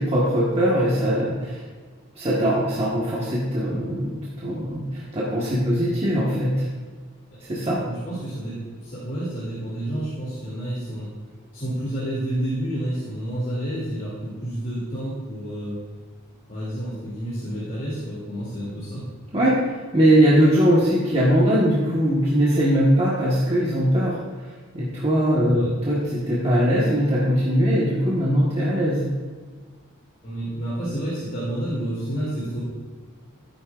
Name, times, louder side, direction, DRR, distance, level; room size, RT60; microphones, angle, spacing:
voice 1, 0.0-1.6 2.2-6.7 7.5-7.8 19.3-19.6 19.9-24.2 24.7-29.1, equal, 25° right, -7 dB, 1.4 m, -21 dB
voice 2, 7.8-11.1 11.5-15.8 16.5-19.0 25.5-25.7 30.2-32.6, right 1 dB, 40° left, -9 dB, 2.7 m, -29 dB
13.0 x 9.5 x 2.5 m, 1.5 s
head